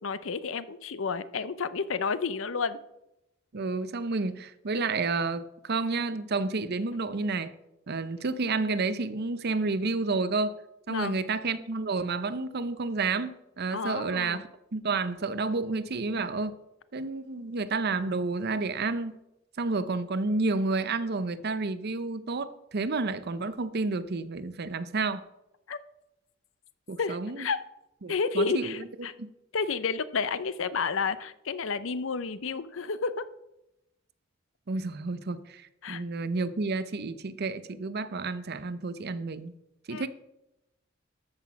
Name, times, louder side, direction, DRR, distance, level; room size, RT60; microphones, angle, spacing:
voice 1, 0.0-2.8 10.9-11.2 13.7-14.4 25.7-25.8 27.0-27.6 28.1-29.1 29.5-33.3 35.8-36.0 39.9-40.1, left 5 dB, 65° left, 0.6 m, -31 dB
voice 2, 3.5-7.5 7.9-10.6 10.9-16.5 16.9-19.2 19.6-25.2 26.9-27.5 28.0-29.3 34.7-39.5 39.9-40.1, right 3 dB, 50° right, 0.6 m, -30 dB
13.5 x 6.1 x 5.7 m
head